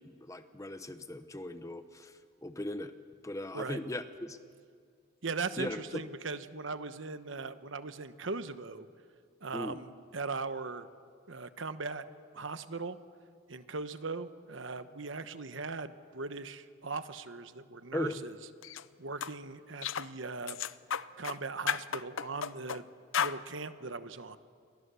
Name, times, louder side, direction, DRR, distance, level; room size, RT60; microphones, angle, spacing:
voice 1, 0.0-2.9 3.2-4.4 5.6-6.0 9.5-9.8 17.9-18.2, left 1 dB, 15° left, 10 dB, 0.9 m, -38 dB
voice 2, 5.2-8.9 9.4-10.9 11.3-12.0 12.3-13.0 13.5-18.3 19.0-20.6 21.2-22.9 23.2-24.4, right 4 dB, 70° right, 11 dB, 1.1 m, -39 dB
sound 1, 18.6-18.8 19.2-19.3 19.8-20.1 20.5-21.4 21.7-22.8 23.1-23.4, left 8 dB, 80° left, 0.6 m, -33 dB
29.5 x 23.0 x 6.9 m, 2.1 s
head